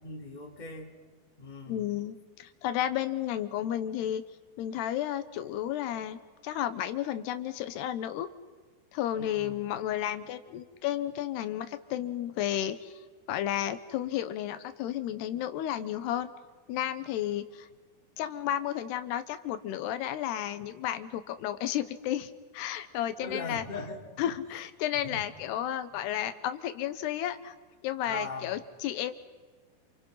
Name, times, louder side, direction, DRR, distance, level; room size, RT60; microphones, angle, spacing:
voice 1, 0.0-0.9 1.4-1.9 9.2-9.6 23.2-24.3 25.0-25.2 28.0-28.4, left 2 dB, 10° left, 2 dB, 2.9 m, -39 dB
voice 2, 1.7-4.2 4.6-8.3 8.9-13.0 13.3-16.3 16.7-17.7 18.2-23.6 24.2-27.5 27.8-29.1, left 11 dB, 90° left, 11 dB, 3.3 m, -32 dB
29.5 x 28.5 x 5.8 m, 1.4 s
omnidirectional pair, 4.6 m